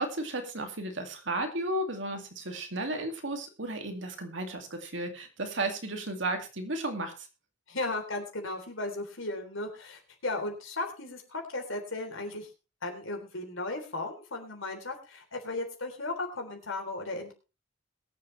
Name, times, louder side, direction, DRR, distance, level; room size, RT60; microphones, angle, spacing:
voice 1, 0.0-7.3, right 2 dB, 65° right, 5 dB, 2.3 m, -34 dB
voice 2, 7.7-12.5 12.8-17.3, left 2 dB, 80° left, 4 dB, 3.6 m, -36 dB
22.0 x 7.5 x 3.3 m, 0.32 s
head